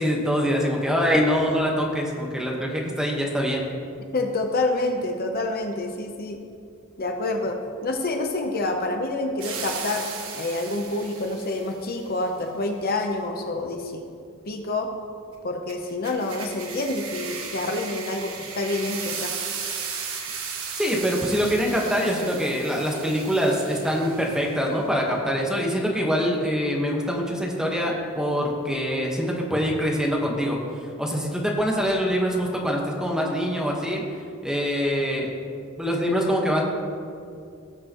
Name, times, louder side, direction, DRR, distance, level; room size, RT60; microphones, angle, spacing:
voice 1, 0.0-3.7 20.8-30.6 31.0-34.0 34.4-35.3 35.8-36.6, equal, 5° right, -1 dB, 1.2 m, -24 dB
voice 2, 4.1-6.4 7.0-7.6 7.8-10.1 10.3-14.1 14.5-14.9 15.4-19.3, left 2 dB, 45° left, 3 dB, 0.8 m, -27 dB
sound 1, 9.4-11.7 15.7-24.6, right 6 dB, 80° right, 1.3 m, -35 dB
18.5 x 6.7 x 3.0 m, 2.4 s
head